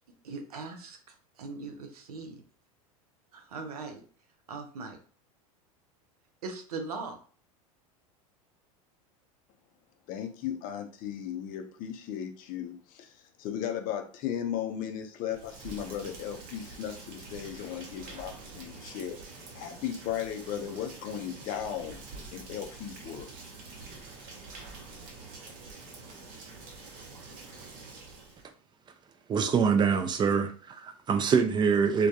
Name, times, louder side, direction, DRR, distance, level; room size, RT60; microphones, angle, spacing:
voice 1, 0.2-2.4 3.3-4.0 4.5-5.0 6.4-7.2, right 4 dB, 90° right, 0.6 m, -40 dB
voice 2, 10.1-19.2 19.5-22.0 22.3-23.4, left 9 dB, 50° left, 0.5 m, -36 dB
Rain, 15.3-28.5, right 3 dB, 50° right, 0.8 m, -46 dB
voice 3, 29.3-32.1, right 6 dB, 25° right, 0.4 m, -25 dB
2.2 x 2.2 x 2.7 m
hypercardioid pair, 95°, 19 cm